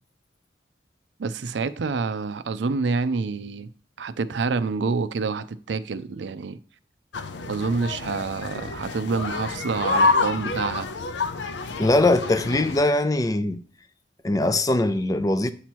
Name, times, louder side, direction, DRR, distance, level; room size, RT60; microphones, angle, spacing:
voice 1, 1.2-3.7 4.0-6.6 7.5-10.9, right 4 dB, 85° right, 0.5 m, -27 dB
sound 1, 7.1-12.8, left 3 dB, 85° left, 0.6 m, -27 dB
voice 2, 11.8-13.6 14.2-15.5, left 2 dB, 20° left, 0.4 m, -21 dB
8.0 x 2.9 x 6.1 m
head